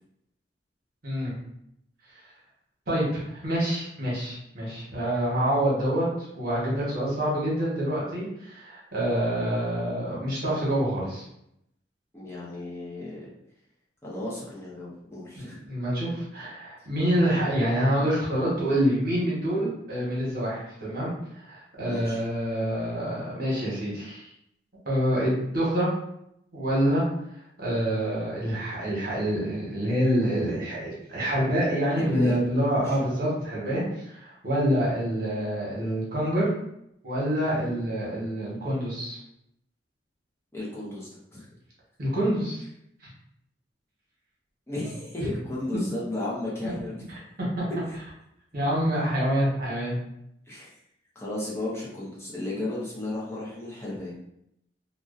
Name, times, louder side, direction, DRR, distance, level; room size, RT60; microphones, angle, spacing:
voice 1, 1.0-1.3 2.9-11.2 15.4-24.3 24.9-25.9 26.5-27.0 27.6-36.5 37.0-39.2 42.0-42.6 47.6-47.7 48.5-50.0, equal, 55° right, -6 dB, 1.0 m, -26 dB
voice 2, 12.1-13.3 14.0-15.6 21.8-22.2 31.9-32.4 32.7-33.1 37.6-37.8 40.5-41.5 44.7-47.0 47.9-48.0 50.5-50.7 51.2-54.2, left 1 dB, 15° left, -6 dB, 0.5 m, -34 dB
2.5 x 2.1 x 2.4 m, 0.78 s
head